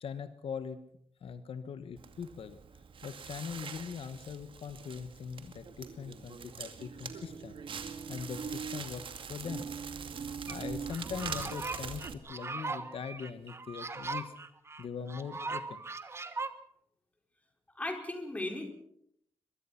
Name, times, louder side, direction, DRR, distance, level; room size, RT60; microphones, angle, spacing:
voice 1, 0.0-0.8 1.2-2.6 3.0-7.6 8.1-9.7 10.5-14.3 14.8-15.8, left 6 dB, 60° left, 11 dB, 1.3 m, -41 dB
Crackle, 2.0-12.1, right 6 dB, 55° right, 2.4 m, -42 dB
sound 1, 10.5-10.6 10.9-16.5, right 3 dB, 25° right, 1.4 m, -39 dB
voice 2, 17.8-18.7, left 1 dB, 15° left, 4 dB, 4.2 m, -36 dB
23.0 x 22.5 x 5.8 m, 0.72 s
wide cardioid pair, 175°, 11 cm